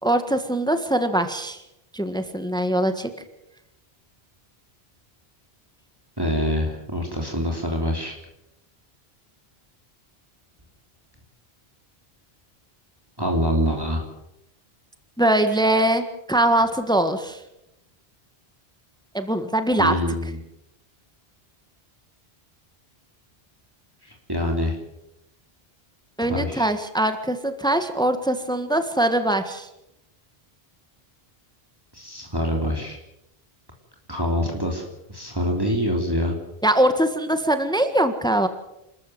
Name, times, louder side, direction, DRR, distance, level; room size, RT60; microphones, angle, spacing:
voice 1, 0.0-1.6 1.9-3.1 15.2-17.4 19.1-19.9 26.2-29.7 36.6-38.5, right 1 dB, 5° left, 9 dB, 1.5 m, -22 dB
voice 2, 6.2-8.1 13.2-14.0 19.8-20.4 24.0-24.8 26.2-26.7 31.9-33.0 34.1-34.8 35.1-36.4, equal, 20° right, 0 dB, 3.4 m, -25 dB
28.0 x 14.0 x 7.8 m, 0.86 s
omnidirectional pair, 1.0 m